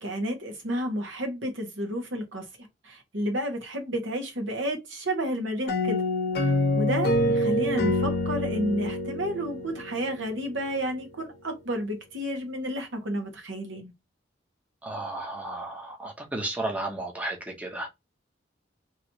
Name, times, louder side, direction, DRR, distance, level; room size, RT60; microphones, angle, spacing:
voice 1, 0.0-6.0 6.4-13.9, equal, 85° right, 1.3 m, -31 dB
sound 1, 5.7-10.3, left 1 dB, 55° left, 0.8 m, -26 dB
voice 2, 14.8-17.9, right 2 dB, 10° right, 0.8 m, -33 dB
3.1 x 2.9 x 2.8 m
head